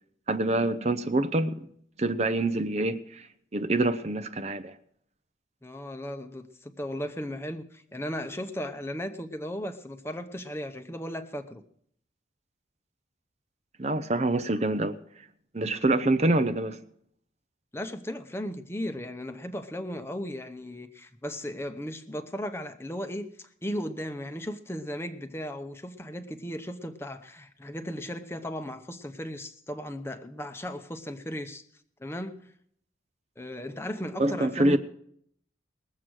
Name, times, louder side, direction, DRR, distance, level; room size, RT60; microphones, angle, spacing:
voice 1, 0.3-1.7 2.0-4.8 13.8-15.3 15.5-16.8 34.2-34.8, right 2 dB, 35° right, 0.6 m, -26 dB
voice 2, 5.6-11.6 17.7-31.6 32.0-32.5 33.4-34.8, equal, 15° left, 0.8 m, -36 dB
20.0 x 7.5 x 6.3 m
head